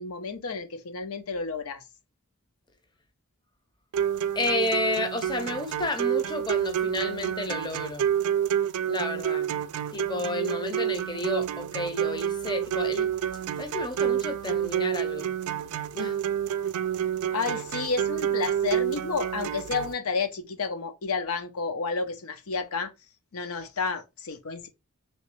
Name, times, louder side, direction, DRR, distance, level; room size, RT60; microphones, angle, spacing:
voice 1, 0.0-1.8 17.3-22.9 23.3-24.7, left 4 dB, 75° left, 0.6 m, -31 dB
sound 1, 3.9-19.9, right 9 dB, 90° right, 0.4 m, -29 dB
voice 2, 4.3-8.1 8.8-9.5 9.9-13.1 13.6-15.3 15.9-16.2, left 2 dB, 20° left, 0.6 m, -31 dB
3.2 x 3.1 x 3.0 m
head